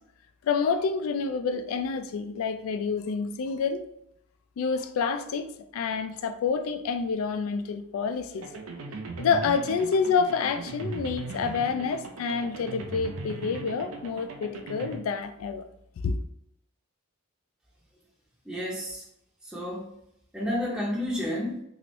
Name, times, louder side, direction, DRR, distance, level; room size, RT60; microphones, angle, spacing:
voice 1, 0.4-3.8 4.6-5.5 5.7-8.5 9.2-15.7 16.0-16.2, left 5 dB, 90° left, 9 dB, 0.3 m, -28 dB
sound 1, 8.4-15.0, right 3 dB, 85° right, 0.5 m, -38 dB
voice 2, 18.4-19.0 19.4-19.9 20.3-21.6, left 1 dB, 5° right, -6 dB, 0.5 m, -31 dB
3.0 x 2.5 x 3.0 m, 0.77 s
head